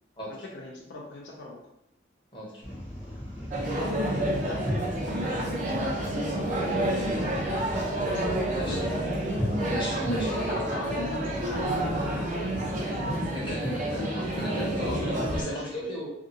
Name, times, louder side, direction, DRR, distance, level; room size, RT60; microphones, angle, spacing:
voice 1, 0.3-1.6 3.6-7.3 8.1-9.5 10.2-13.1 13.9-14.0 14.9-15.9, left 2 dB, 65° left, -1 dB, 0.4 m, -41 dB
voice 2, 2.3-2.6 8.5-8.8 9.6-10.3 13.3-16.1, equal, 25° left, -5 dB, 0.7 m, -34 dB
sound 1, 2.6-15.4, equal, 5° right, 0.7 m, -37 dB
sound 2, 3.5-15.4, right 1 dB, 40° right, 0.5 m, -29 dB
2.6 x 2.3 x 2.6 m, 0.81 s
head